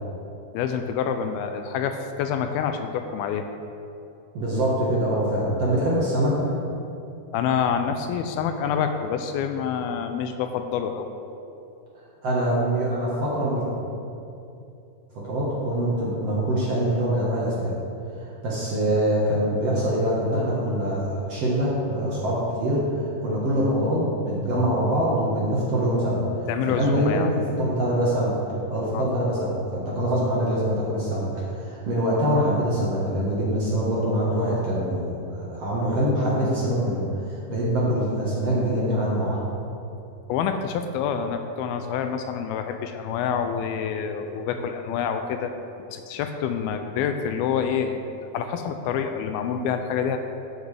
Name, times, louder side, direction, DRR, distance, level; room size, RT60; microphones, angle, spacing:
voice 1, 0.5-3.5 7.3-11.1 26.5-27.3 28.9-29.1 40.3-45.5 45.9-50.2, left 7 dB, 85° left, 7 dB, 2.4 m, -27 dB
voice 2, 4.3-6.3 12.2-13.6 15.1-17.7 18.2-22.8 23.2-26.2 26.8-28.3 28.7-39.4, right 1 dB, 55° right, -6 dB, 2.0 m, -24 dB
14.0 x 7.4 x 3.4 m, 2.7 s
omnidirectional pair, 4.5 m